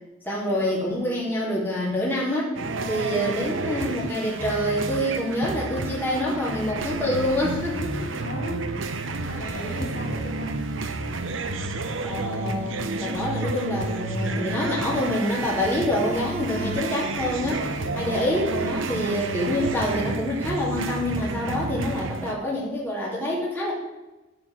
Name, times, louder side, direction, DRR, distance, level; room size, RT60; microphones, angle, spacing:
voice 1, 0.2-2.6 2.9-8.1 9.5-9.6 12.0-23.7, left 1 dB, 10° left, -6 dB, 2.9 m, -26 dB
sound 1, 2.6-22.3, right 3 dB, 85° right, 1.0 m, -30 dB
voice 2, 2.8-3.1 8.0-8.7 9.1-10.7 17.9-18.1, equal, 60° left, -3 dB, 3.7 m, -36 dB
11.5 x 5.1 x 7.4 m, 1.1 s
head